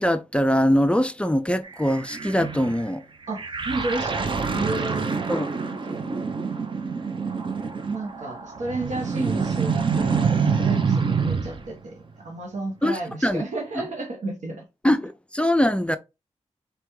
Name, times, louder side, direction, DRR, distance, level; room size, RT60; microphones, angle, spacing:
voice 1, 0.0-3.0 5.3-5.5 12.8-13.4 14.8-16.0, equal, 10° left, 0.4 m, -22 dB
sound 1, 1.6-2.8 3.3-11.7, right 5 dB, 45° right, 0.7 m, -26 dB
voice 2, 3.3-5.2 5.6-6.4 7.9-12.0 12.2-14.6, right 2 dB, 90° right, 1.2 m, -32 dB
4.2 x 3.4 x 3.1 m
wide cardioid pair, 110°, 12 cm